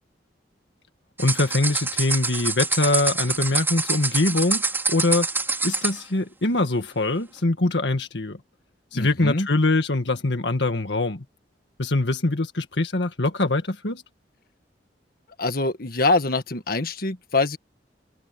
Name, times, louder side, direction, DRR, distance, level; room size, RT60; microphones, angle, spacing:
voice 1, 1.2-4.6 4.9-5.3 5.6-8.4 8.9-11.2 11.8-14.0, left 2 dB, 75° left, 1.8 m, -23 dB
sound 1, 1.2-6.0, right 3 dB, 10° right, 4.2 m, -26 dB
voice 2, 8.9-9.5 15.4-17.6, left 2 dB, 55° left, 1.6 m, -24 dB
head